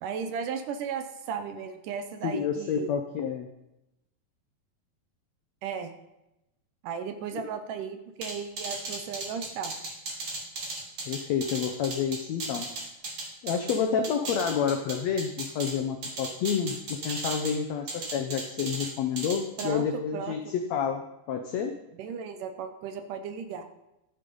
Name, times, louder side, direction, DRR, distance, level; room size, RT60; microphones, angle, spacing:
voice 1, 0.0-2.9 5.6-5.9 6.8-9.7 19.6-20.3 22.0-23.6, right 6 dB, 75° right, 8 dB, 2.3 m, -35 dB
voice 2, 2.2-3.5 7.3-7.4 11.0-12.7 13.4-21.7, left 7 dB, 80° left, 5 dB, 1.5 m, -29 dB
sound 1, 8.2-13.8 14.0-15.7 16.0-17.5 17.9-18.9 19.2-19.7, right 3 dB, 40° right, 2.6 m, -35 dB
13.0 x 8.7 x 5.4 m, 0.92 s
omnidirectional pair, 4.1 m